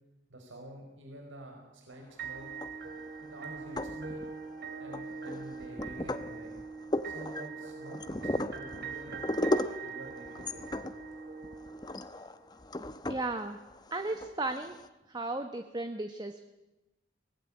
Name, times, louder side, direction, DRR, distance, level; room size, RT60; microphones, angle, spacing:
voice 1, 0.3-2.5 3.2-4.2 4.8-6.5 7.0-9.5 9.8-10.6, right 1 dB, 85° right, 1 dB, 4.9 m, -47 dB
sound 1, 2.2-12.2, right 5 dB, 55° right, 3.1 m, -43 dB
sound 2, 2.4-3.1 3.6-4.5 4.9-14.9, left 1 dB, 20° left, 0.9 m, -36 dB
voice 2, 13.1-13.6 13.9-14.8 15.1-16.4, right 2 dB, 20° right, 7 dB, 1.1 m, -35 dB
23.0 x 19.0 x 9.9 m, 1.0 s
head